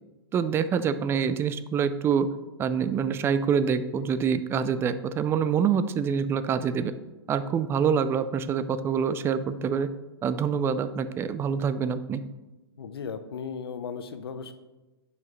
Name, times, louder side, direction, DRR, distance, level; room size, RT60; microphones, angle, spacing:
voice 1, 0.3-2.3 2.6-6.9 7.3-9.9 10.2-12.2, right 7 dB, 20° right, 13 dB, 0.4 m, -26 dB
voice 2, 12.8-14.5, left 6 dB, 70° left, 10 dB, 0.7 m, -36 dB
9.3 x 5.7 x 3.2 m, 1.1 s
hypercardioid pair, 115°, 13 cm